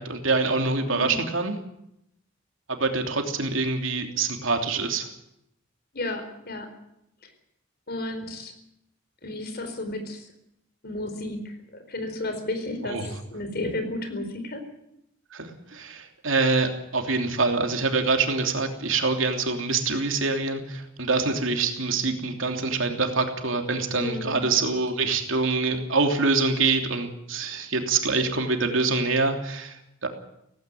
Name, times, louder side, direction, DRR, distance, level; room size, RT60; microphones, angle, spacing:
voice 1, 0.0-1.6 2.7-5.1 12.8-13.1 15.3-29.8 30.0-30.1, right 3 dB, 75° right, 4 dB, 3.1 m, -25 dB
voice 2, 0.9-1.2 5.9-6.7 7.2-7.3 7.9-8.5 9.2-10.3 10.8-14.6 23.9-24.4, left 2 dB, 50° left, 7 dB, 4.4 m, -33 dB
17.5 x 16.5 x 9.1 m, 0.79 s
head